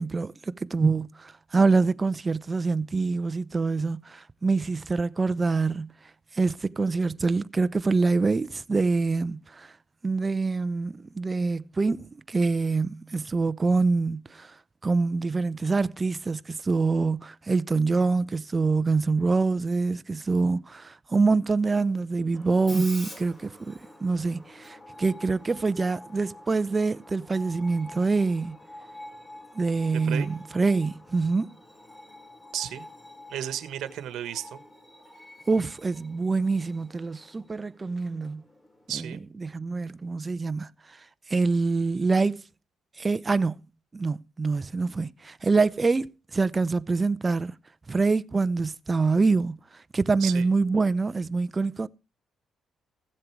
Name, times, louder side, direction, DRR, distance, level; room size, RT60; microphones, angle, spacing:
voice 1, 0.0-5.9 6.3-9.7 10.0-14.5 14.8-28.5 29.5-31.5 35.5-38.4 38.9-39.1 39.4-41.0 41.3-42.4 43.0-43.6 43.9-47.5 47.9-51.9, right 4 dB, 25° right, 0.7 m, -25 dB
Screech, 22.3-38.9, left 1 dB, 15° left, 4.8 m, -48 dB
voice 2, 32.5-32.8 33.3-34.6 38.9-39.2 50.2-50.5, right 11 dB, 75° right, 1.4 m, -33 dB
16.0 x 7.6 x 4.6 m
cardioid pair, 90°, 0 cm